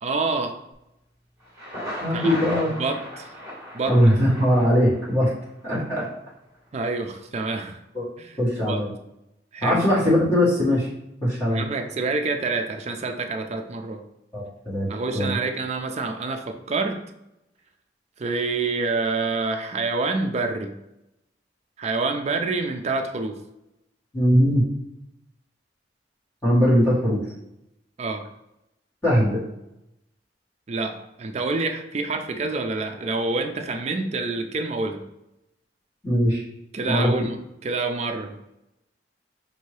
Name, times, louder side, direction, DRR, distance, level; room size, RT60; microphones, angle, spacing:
voice 1, 0.0-0.6 2.1-2.4 2.8-3.3 3.7-4.0 6.7-7.8 8.2-8.4 8.7-8.9 9.5-9.8 11.5-14.0 14.9-17.0 18.2-20.7 21.8-23.4 28.0-28.2 30.7-35.0 36.7-38.4, right 3 dB, 35° right, 6 dB, 0.4 m, -27 dB
Thunder, 1.4-5.4, equal, 15° right, 1.4 m, -36 dB
voice 2, 2.0-2.7 3.9-5.3 5.6-6.1 7.9-8.1 8.4-8.9 9.6-10.9 11.2-11.6 14.3-14.9 15.1-15.3 24.1-24.6 26.4-27.2 29.0-29.4 36.0-36.4 36.9-37.1, equal, 15° left, -8 dB, 1.6 m, -20 dB
5.3 x 2.7 x 3.2 m, 0.87 s
head